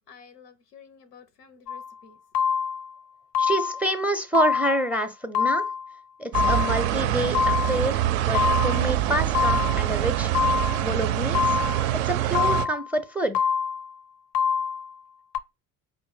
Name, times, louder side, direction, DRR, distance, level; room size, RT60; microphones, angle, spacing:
voice 1, 0.1-2.2, left 6 dB, 85° left, 0.7 m, -51 dB
sound 1, 1.7-1.9 2.3-2.9 3.3-3.9 4.3-4.9 5.3-5.9 6.3-6.9 7.3-7.9 8.3-8.9 9.3-9.9 10.3-10.9 11.3-11.9 12.3-12.9 13.3-13.9 14.3-14.9 15.3-15.4, left 7 dB, 50° left, 0.5 m, -25 dB
voice 2, 3.4-5.6 6.2-10.3 10.8-11.6 12.0-13.3, right 1 dB, 5° right, 0.5 m, -27 dB
sound 2, 6.3-12.7, right 12 dB, 60° right, 0.5 m, -25 dB
5.1 x 2.1 x 3.2 m
figure-of-eight pair, 55°, 47 cm